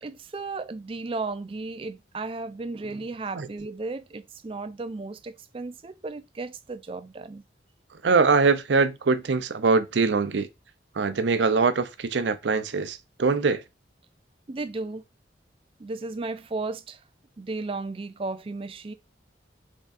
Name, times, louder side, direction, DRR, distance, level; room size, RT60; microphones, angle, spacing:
voice 1, 0.0-7.4 14.5-15.0 15.8-17.0 17.4-18.9, right 3 dB, 30° right, 0.4 m, -34 dB
voice 2, 8.0-10.5 11.0-13.6, right 4 dB, 80° right, 0.5 m, -23 dB
3.6 x 3.5 x 4.1 m
head